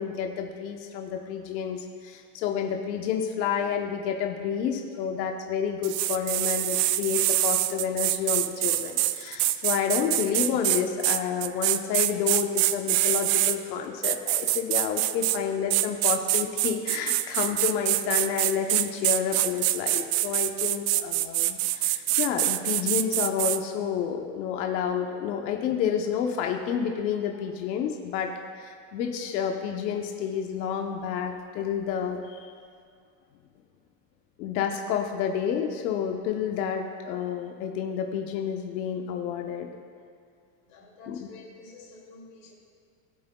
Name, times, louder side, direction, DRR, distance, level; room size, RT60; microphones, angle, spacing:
voice 1, 0.0-32.5 34.4-39.7 41.1-41.3, left 7 dB, 85° left, 3 dB, 1.0 m, -29 dB
sound 1, 5.8-13.6 14.0-15.4 15.7-23.6, right 15 dB, 60° right, 0.5 m, -25 dB
voice 2, 40.6-42.5, left 3 dB, 55° left, -1 dB, 2.6 m, -49 dB
18.5 x 7.6 x 2.3 m, 2.2 s
supercardioid pair, 135°, 49 cm